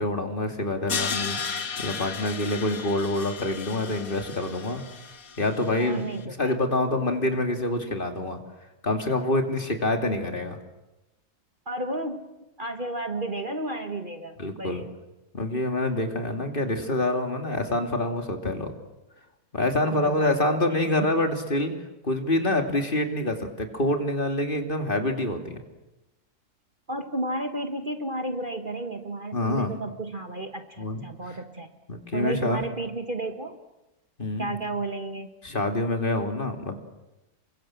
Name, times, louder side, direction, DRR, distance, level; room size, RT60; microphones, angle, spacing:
voice 1, 0.0-4.8 5.4-8.4 8.8-10.6 14.4-14.8 15.3-18.7 19.5-21.7 22.0-25.6 29.3-29.7 30.8-31.0 31.9-32.6 34.2-34.5 35.4-36.8, left 2 dB, 30° left, 4 dB, 2.9 m, -26 dB
Crash cymbal, 0.9-5.9, left 6 dB, 60° left, 2.0 m, -34 dB
voice 2, 5.8-6.6 11.6-14.9 19.8-21.2 26.9-31.7 32.1-33.6 34.4-35.3, right 2 dB, 35° right, 6 dB, 1.6 m, -33 dB
28.5 x 24.0 x 7.7 m, 1.0 s
omnidirectional pair, 1.7 m